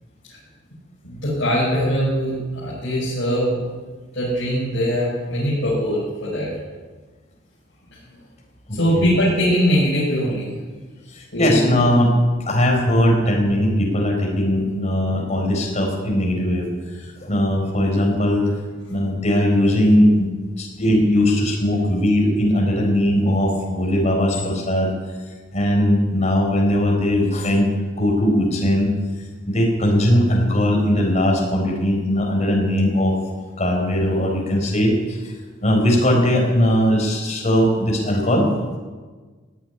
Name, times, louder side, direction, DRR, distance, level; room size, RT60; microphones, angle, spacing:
voice 1, 1.0-3.5 4.1-6.5 8.7-10.5 11.3-11.6, equal, 70° left, -9 dB, 6.0 m, -21 dB
voice 2, 11.1-12.1 12.5-16.7 16.9-18.5 18.9-20.3 20.6-24.9 25.5-27.7 28.0-28.9 29.5-33.2 33.6-35.3 35.6-38.5, equal, 35° left, 0 dB, 4.4 m, -19 dB
17.0 x 8.3 x 9.9 m, 1.4 s
head